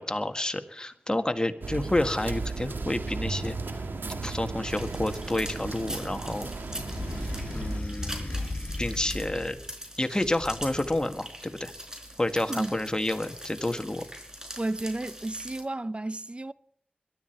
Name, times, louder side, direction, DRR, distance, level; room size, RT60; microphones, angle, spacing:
voice 1, 0.0-3.6 4.1-6.5 7.5-8.5 8.8-9.6 10.0-11.7 12.2-14.0, left 1 dB, 25° left, 1.8 m, -29 dB
sound 1, 1.6-7.8, right 3 dB, 80° right, 1.8 m, -35 dB
sound 2, 4.7-15.6, equal, 20° right, 4.8 m, -42 dB
sound 3, 6.6-9.7 10.2-11.1, left 2 dB, 40° left, 2.8 m, -36 dB
voice 2, 14.6-16.5, right 2 dB, 35° right, 0.7 m, -32 dB
22.0 x 12.5 x 4.5 m
cardioid pair, 40°, 3 cm